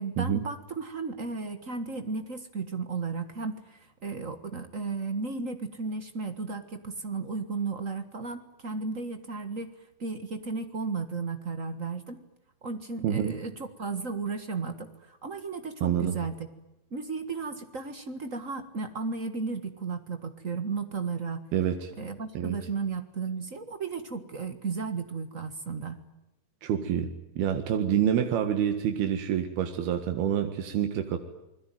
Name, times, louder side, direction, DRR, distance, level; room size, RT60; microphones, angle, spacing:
voice 1, 0.0-9.7 10.0-12.2 12.6-16.3 16.9-21.4 22.0-26.0, right 4 dB, 70° right, 9 dB, 0.7 m, -34 dB
voice 2, 13.0-13.4 15.8-16.2 21.5-21.9 22.4-22.6 26.6-27.1 27.4-31.2, right 9 dB, 90° right, 7 dB, 3.7 m, -27 dB
28.5 x 21.5 x 9.3 m, 0.91 s
omnidirectional pair, 4.3 m